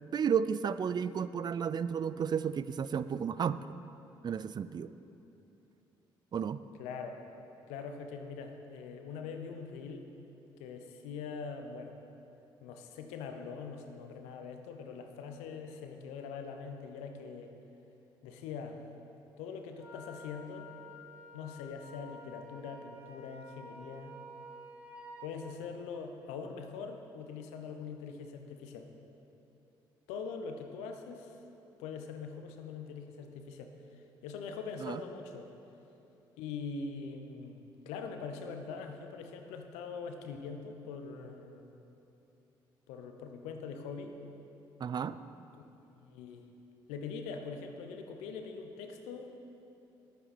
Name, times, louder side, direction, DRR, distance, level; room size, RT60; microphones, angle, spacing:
voice 1, 0.1-3.6 4.2-4.9 6.3-6.6 34.8-35.0 44.8-45.2, right 7 dB, 40° right, 15 dB, 0.3 m, -32 dB
voice 2, 6.8-7.2 7.7-10.1 10.6-11.9 12.6-17.5 18.2-18.8 19.4-20.7 21.3-24.2 25.2-28.9 30.1-31.4 31.8-35.5 36.4-41.7 42.9-44.2 45.6-45.7 45.9-46.5 46.9-49.3, left 5 dB, 80° left, 5 dB, 0.7 m, -43 dB
Wind instrument woodwind instrument, 19.8-25.3, left 1 dB, 15° right, 2.3 m, -51 dB
10.5 x 9.1 x 4.2 m, 2.9 s
hypercardioid pair, 55°, 11 cm